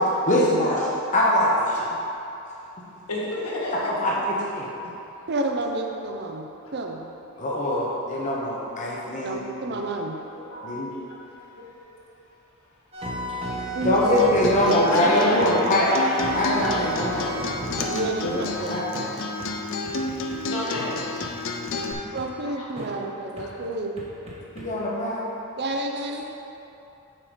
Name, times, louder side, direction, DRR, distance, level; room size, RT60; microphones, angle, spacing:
voice 1, 0.3-1.9 3.8-4.1 4.6-4.7 7.4-9.4 9.7-9.8 10.6-10.9 13.8-15.9 16.3-17.3 18.2-18.4 18.7-18.8 24.6-25.2, left 1 dB, 35° left, -5 dB, 1.0 m, -23 dB
voice 2, 3.1-4.1 4.8-5.1 6.7-6.8 10.3-11.4 13.3-13.6 14.9-17.4 19.2-19.3 19.8-19.9 20.4-21.1 22.5-22.7 23.4-23.5, left 1 dB, 80° left, -5 dB, 1.7 m, -32 dB
voice 3, 5.3-7.0 9.2-10.2 13.7-14.2 17.9-18.8 22.1-24.0 25.6-26.3, right 2 dB, 50° right, 3 dB, 0.7 m, -30 dB
sound 1, 12.9-15.5 15.8-18.6 18.9-19.1 19.4-19.5 19.8-20.4 20.8-20.9 21.2-21.3 21.7-22.2 22.8-22.9 23.4-23.5 24.0-24.7, right 1 dB, 30° right, 1.2 m, -33 dB
Acoustic guitar, 13.9-21.9, left 3 dB, 60° left, 0.6 m, -31 dB
7.6 x 4.8 x 5.0 m, 2.9 s
head